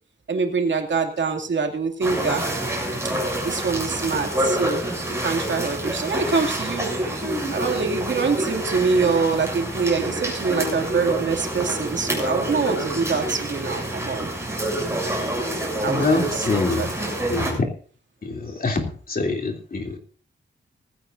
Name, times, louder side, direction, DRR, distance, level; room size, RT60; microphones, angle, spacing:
voice 1, 0.3-2.4 3.4-4.8 5.2-6.9 7.5-14.3 15.8-16.5 16.8-16.9, right 4 dB, 70° right, 3 dB, 2.4 m, -24 dB
sound 1, 2.0-17.5, right 1 dB, 15° right, 7.4 m, -27 dB
voice 2, 15.8-16.9 17.3-17.7 18.2-20.0, left 3 dB, 50° left, 2 dB, 3.0 m, -25 dB
19.0 x 15.5 x 2.6 m, 0.41 s
wide cardioid pair, 130°, 20 cm